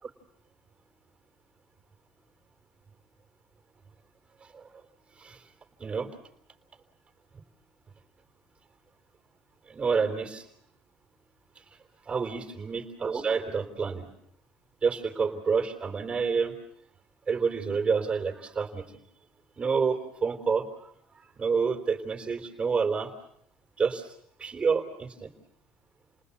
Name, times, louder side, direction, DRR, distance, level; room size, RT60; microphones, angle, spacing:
voice 1, 9.7-10.5 11.6-11.7 12.1-14.1 14.8-16.6 17.3-18.9 19.6-20.9 21.4-23.1 23.8-24.1 24.4-25.3, right 5 dB, 25° right, 4 dB, 3.8 m, -28 dB
30.0 x 19.5 x 8.5 m, 0.70 s
supercardioid pair, 100°, 4 cm